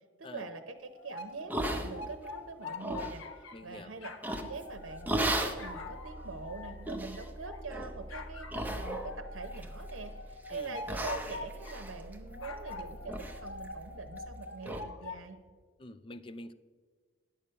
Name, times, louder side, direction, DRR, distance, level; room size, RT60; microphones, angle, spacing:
voice 1, 0.2-4.1 4.4-15.4, right 4 dB, 90° right, 8 dB, 0.7 m, -44 dB
sound 1, 0.9-3.7 4.0-7.7 8.1-11.8 12.3-15.2, left 3 dB, 80° left, 0.8 m, -45 dB
sound 2, 1.5-2.3 2.7-3.2 4.2-4.6 5.1-5.6 6.2-6.3 6.9-7.2 7.7-7.9 8.5-9.2 9.5-10.1 10.5-10.6 10.9-12.7 13.1-13.4 13.6-13.7 14.2-14.3 14.6-14.8, right 1 dB, 10° right, 0.6 m, -35 dB
voice 2, 3.5-3.9 10.5-10.8 15.8-16.5, left 2 dB, 25° left, 12 dB, 0.4 m, -46 dB
sound 3, 4.7-14.3, equal, 25° right, 2.1 m, -48 dB
9.9 x 6.7 x 5.6 m, 1.5 s
head